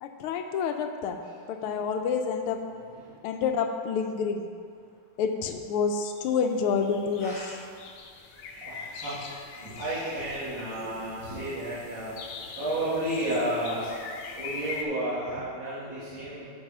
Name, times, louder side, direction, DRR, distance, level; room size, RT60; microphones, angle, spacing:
voice 1, 0.0-1.2 1.5-2.6 3.2-4.5 5.2-7.6 16.2-16.3, left 6 dB, 85° left, 6 dB, 1.6 m, -28 dB
sound 1, 6.0-6.4 6.8-14.8, left 5 dB, 65° left, 1.3 m, -43 dB
voice 2, 7.2-7.6 8.6-12.1 12.6-14.0 14.4-16.5, right 1 dB, 60° right, -12 dB, 2.7 m, -32 dB
8.0 x 4.8 x 6.0 m, 2.3 s
omnidirectional pair, 2.4 m